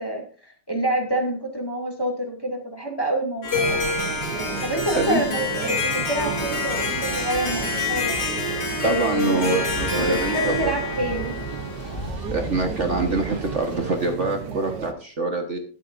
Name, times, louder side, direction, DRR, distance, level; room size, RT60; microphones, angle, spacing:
voice 1, 0.0-3.8 4.6-8.2 8.8-9.6 9.9-11.3, right 1 dB, 15° left, 1 dB, 2.2 m, -27 dB
Harp, 3.4-12.2, left 3 dB, 75° left, 3.6 m, -27 dB
sound 1, 3.5-14.9, right 7 dB, 80° right, 1.6 m, -34 dB
sound 2, 5.9-14.1, right 1 dB, 35° left, 2.0 m, -38 dB
voice 2, 8.8-10.8 12.3-15.6, right 3 dB, 45° right, 4 dB, 1.6 m, -25 dB
21.5 x 8.2 x 2.6 m, 0.40 s
omnidirectional pair, 1.8 m